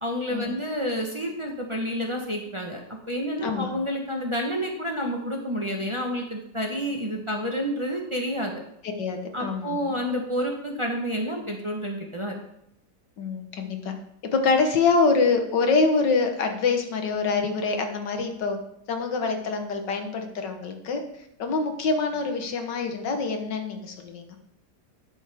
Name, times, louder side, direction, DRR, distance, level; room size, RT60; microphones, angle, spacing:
voice 1, 0.0-2.8 3.1-8.5 9.3-12.4, equal, 20° right, 0 dB, 1.0 m, -29 dB
voice 2, 3.4-3.7 8.8-9.9 13.2-13.9 14.3-18.6 18.9-21.0 21.4-24.4, left 4 dB, 90° left, 5 dB, 1.9 m, -25 dB
12.0 x 7.1 x 3.5 m, 0.77 s
omnidirectional pair, 1.8 m